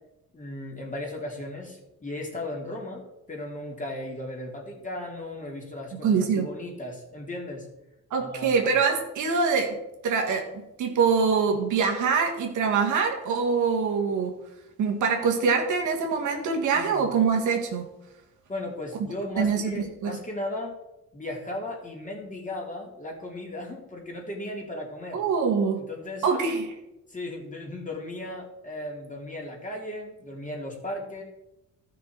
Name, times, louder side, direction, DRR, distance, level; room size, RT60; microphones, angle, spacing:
voice 1, 0.3-7.7 8.2-8.6 16.7-17.1 18.5-20.8 21.1-25.2 25.9-26.2 27.1-31.2, left 1 dB, 25° left, -1 dB, 3.4 m, -36 dB
voice 2, 5.9-6.5 8.1-9.7 10.0-10.5 10.8-14.3 14.8-17.9 19.4-20.2 25.1-25.8 26.2-26.7, right 5 dB, 75° right, 2 dB, 2.0 m, -24 dB
14.0 x 6.0 x 4.7 m, 0.91 s
cardioid pair, 90°, 30 cm